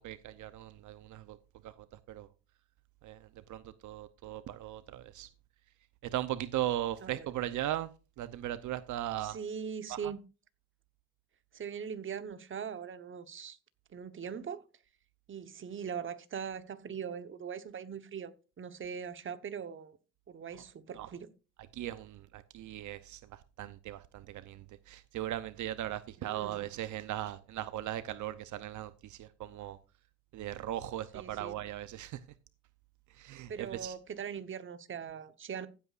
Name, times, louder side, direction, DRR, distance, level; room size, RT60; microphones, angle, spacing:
voice 1, 0.0-1.4 1.6-2.3 3.0-5.3 6.0-7.9 8.2-9.4 9.9-10.1 21.0-21.1 21.7-29.8 30.3-32.2 33.1-33.9, right 13 dB, 75° right, 0.7 m, -38 dB
voice 2, 9.2-10.2 11.5-13.6 13.9-14.6 15.3-20.0 20.3-21.3 26.2-26.6 31.1-31.5 33.5-35.7, right 7 dB, 40° right, 1.1 m, -41 dB
15.5 x 8.3 x 2.5 m
cardioid pair, 90°, 30 cm